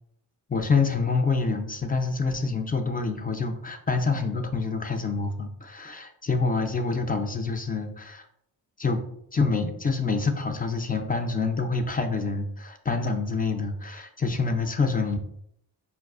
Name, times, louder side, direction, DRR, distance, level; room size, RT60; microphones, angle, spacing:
voice 1, 0.5-8.3 8.8-9.0 9.3-15.2, left 4 dB, 20° left, 5 dB, 0.4 m, -26 dB
4.1 x 2.3 x 2.3 m, 0.73 s
cardioid pair, 50°, 49 cm